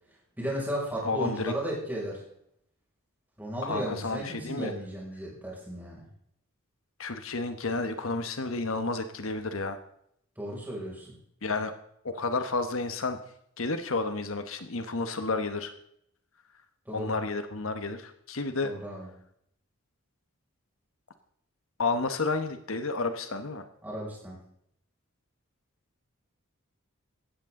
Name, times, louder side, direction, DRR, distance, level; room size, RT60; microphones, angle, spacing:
voice 1, 0.4-2.2 3.4-6.1 10.4-11.1 16.9-17.2 18.6-19.1 23.8-24.4, right 1 dB, 10° right, -4 dB, 5.8 m, -35 dB
voice 2, 1.0-1.5 3.6-4.7 7.0-9.8 11.4-11.7 12.0-13.2 13.6-15.7 16.9-18.7 21.8-23.7, left 3 dB, 70° left, 9 dB, 1.2 m, -31 dB
17.5 x 13.5 x 3.8 m, 0.71 s
head